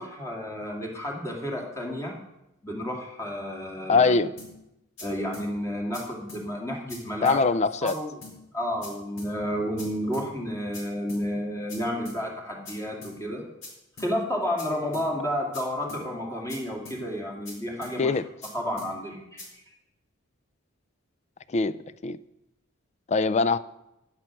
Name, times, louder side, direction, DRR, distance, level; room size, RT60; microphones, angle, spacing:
voice 1, 0.0-2.1 2.6-4.2 5.0-7.5 7.8-8.2 8.5-13.4 14.0-18.2 18.5-19.6, equal, 15° left, 2.3 m, -31 dB
voice 2, 3.9-4.3 7.2-7.9 18.0-18.2 21.5-21.7 22.0-22.2 23.1-23.6, left 4 dB, 30° left, 0.4 m, -22 dB
sound 1, 4.4-4.5 5.0-5.1 5.3-5.5 5.9-6.0 6.3-6.4 6.9-7.0 7.3-7.4 7.9-8.0 8.2-8.4 8.8-8.9 9.2-9.3 9.8-9.9 10.1-10.3 10.7-10.8 11.1-11.2 11.7-11.8 12.1-12.2 12.7-12.8 13.0-13.2 13.6-13.7 14.0-14.1 14.6-14.7 14.9-15.1 15.5-15.6 15.9-16.0 16.5-16.6 16.9-17.0 17.5-17.6 17.8-18.0 18.4-18.5 18.8-18.9 19.4-19.5, left 3 dB, 65° left, 4.5 m, -42 dB
10.5 x 9.6 x 6.0 m
head